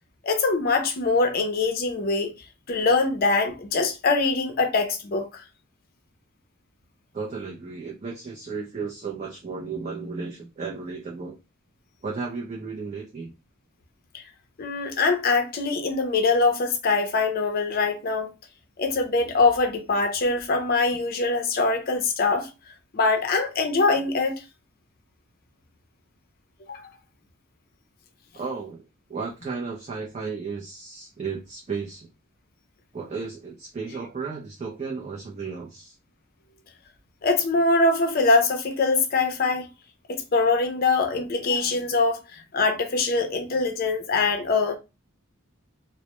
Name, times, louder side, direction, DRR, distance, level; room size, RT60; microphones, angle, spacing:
voice 1, 0.2-2.3 2.7-5.4 14.6-18.3 18.8-22.5 22.9-24.4 26.7-26.8 37.2-39.7 40.1-42.2 42.5-44.8, left 3 dB, 45° left, 0.5 m, -23 dB
voice 2, 7.1-11.3 12.0-13.3 28.3-28.8 29.1-32.1 32.9-35.9, right 4 dB, 30° right, 0.4 m, -34 dB
2.1 x 2.0 x 2.9 m
head